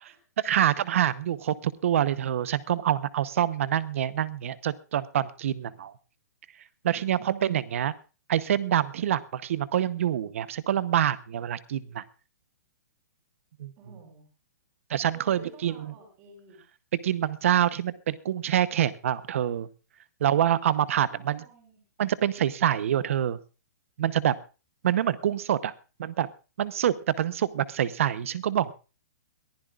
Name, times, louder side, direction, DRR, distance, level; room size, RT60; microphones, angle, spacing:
voice 1, 0.4-5.9 6.8-7.9 8.3-12.0 13.6-13.7 14.9-15.8 17.0-19.7 20.2-21.4 22.0-23.4 24.0-24.4 24.8-25.7 26.0-26.3 26.6-28.7, right 10 dB, 50° right, 17 dB, 0.9 m, -26 dB
voice 2, 6.9-7.3 13.8-14.3 15.1-16.6 20.9-21.8, right 3 dB, 25° right, 3 dB, 5.6 m, -52 dB
22.5 x 15.0 x 2.4 m, 0.32 s
hypercardioid pair, 175°, 9 cm